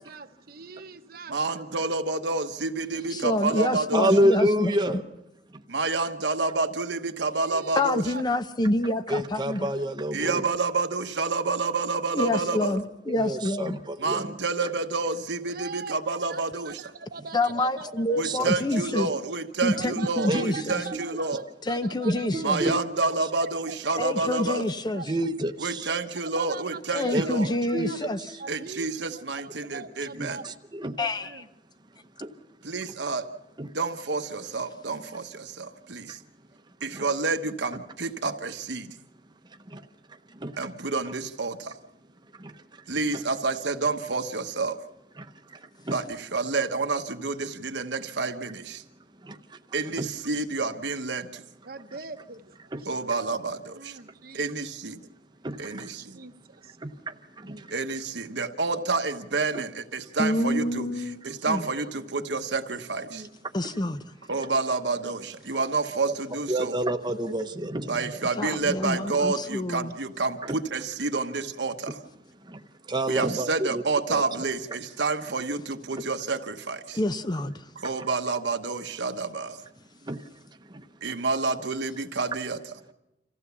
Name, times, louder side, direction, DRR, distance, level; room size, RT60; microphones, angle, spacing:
voice 1, 0.0-1.4 2.9-3.7 7.3-8.2 15.4-18.4 19.7-21.3 21.7-22.6 23.1-24.0 24.3-24.6 24.9-25.1 26.3-28.0 28.4-30.5 31.0-31.5 51.6-52.9 53.7-54.4 55.0-55.1 56.0-56.8 57.4-57.7 61.6-61.9 63.1-63.3, right 4 dB, 55° right, 9 dB, 1.0 m, -42 dB
voice 2, 1.3-4.1 5.7-8.0 10.1-12.8 14.0-16.8 18.2-21.4 22.4-24.6 25.6-27.5 28.5-30.4 32.6-33.3 33.7-36.2 36.8-38.9 40.6-41.7 42.9-44.8 45.9-48.8 49.7-51.4 52.9-54.0 54.3-55.0 55.6-56.2 57.7-60.9 61.2-63.2 64.3-66.8 67.9-72.0 73.1-77.0 77.8-79.6 81.0-82.6, right 3 dB, 75° right, 6 dB, 1.2 m, -29 dB
voice 3, 3.1-5.0 7.8-9.7 12.1-13.8 17.3-19.1 19.6-20.8 21.7-22.6 24.0-25.0 26.9-28.2 31.0-31.3 60.2-61.2 61.5-61.7 63.5-64.0 68.4-69.9 76.9-77.6, left 1 dB, 25° left, 11 dB, 0.6 m, -27 dB
voice 4, 3.9-5.0 9.1-10.4 13.1-14.3 14.6-14.7 18.2-19.1 20.3-20.7 20.9-21.0 22.3-22.8 25.1-26.0 27.1-27.2 27.7-27.9 30.2-31.0 32.8-32.9 33.6-33.7 36.9-37.1 39.7-39.8 40.4-40.5 41.1-41.2 42.4-42.5 43.1-43.2 45.2-45.3 45.9-46.0 49.2-49.4 50.0-50.1 52.7-52.8 55.4-55.6 56.8-56.9 57.4-57.6 59.5-59.6 64.3-64.4 66.5-68.2 70.4-70.6 72.5-72.6 72.9-73.8 74.1-74.2 78.0-78.1 80.1-80.2 80.7-80.8, right 1 dB, 25° right, 6 dB, 0.9 m, -28 dB
26.5 x 15.0 x 7.0 m, 0.95 s
head